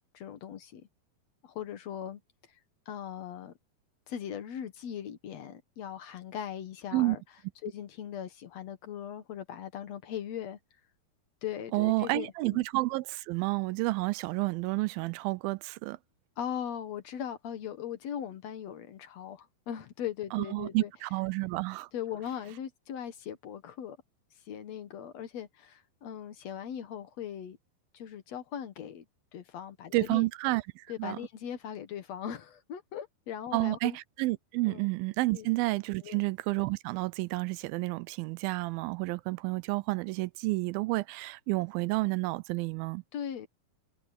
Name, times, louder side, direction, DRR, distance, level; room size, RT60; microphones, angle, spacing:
voice 1, 0.1-0.8 1.4-2.2 2.5-2.6 2.9-3.5 4.1-7.2 7.6-10.6 11.4-12.6 16.4-20.9 21.9-24.0 24.5-27.6 27.9-29.0 29.3-30.3 30.9-34.0 34.7-34.9 35.3-35.5 36.0-36.2 43.1-43.5, left 9 dB, 60° left, 2.0 m, -39 dB
voice 2, 11.7-16.0 20.3-21.9 29.9-31.2 33.5-43.0, right 21 dB, 85° right, 2.3 m, -30 dB
omnidirectional pair, 4.3 m